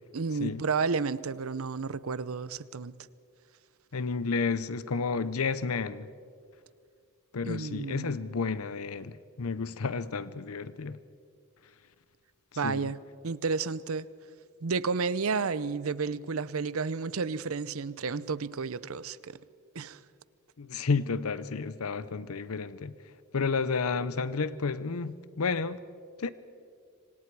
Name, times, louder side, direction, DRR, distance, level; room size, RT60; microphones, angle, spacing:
voice 1, 0.1-2.9 7.5-8.3 12.6-13.0 13.2-14.1 14.6-19.4 19.7-20.0, right 4 dB, 75° right, 0.7 m, -31 dB
voice 2, 3.9-6.1 7.3-11.0 12.6-12.9 20.6-22.9 23.3-25.8 26.2-26.3, left 4 dB, 90° left, 0.7 m, -31 dB
26.5 x 26.0 x 4.7 m
head